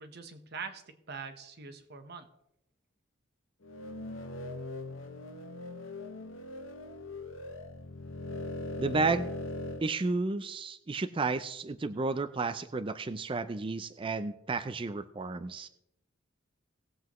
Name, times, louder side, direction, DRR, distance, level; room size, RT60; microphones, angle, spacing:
voice 1, 0.0-2.3, right 5 dB, 55° right, 8 dB, 1.1 m, -43 dB
sound 1, 3.6-9.8, left 2 dB, 75° left, 0.9 m, -40 dB
voice 2, 8.8-9.3 9.8-15.7, right 3 dB, 25° right, 11 dB, 0.4 m, -32 dB
19.0 x 7.8 x 3.1 m, 0.81 s
head